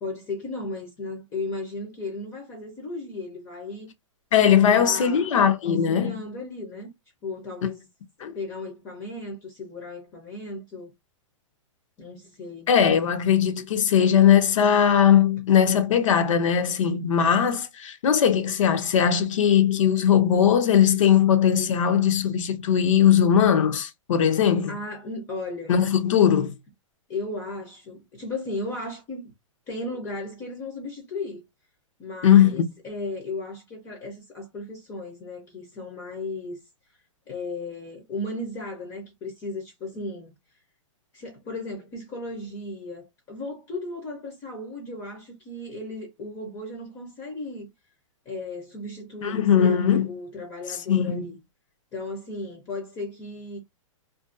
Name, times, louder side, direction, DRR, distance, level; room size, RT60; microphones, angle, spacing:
voice 1, 0.0-3.9 4.7-5.3 5.6-6.9 7.2-7.9 8.2-10.9 12.0-12.7 24.7-25.7 27.1-29.2 29.7-31.4 32.0-36.6 37.3-40.3 41.1-47.7 48.3-51.4 51.9-53.6, left 2 dB, 15° left, 0.5 m, -35 dB
voice 2, 4.3-6.2 8.2-8.4 12.7-24.8 25.7-26.5 32.2-32.7 49.2-50.1 50.9-51.2, left 8 dB, 70° left, 0.6 m, -19 dB
2.5 x 2.2 x 2.4 m
hypercardioid pair, 165°, 17 cm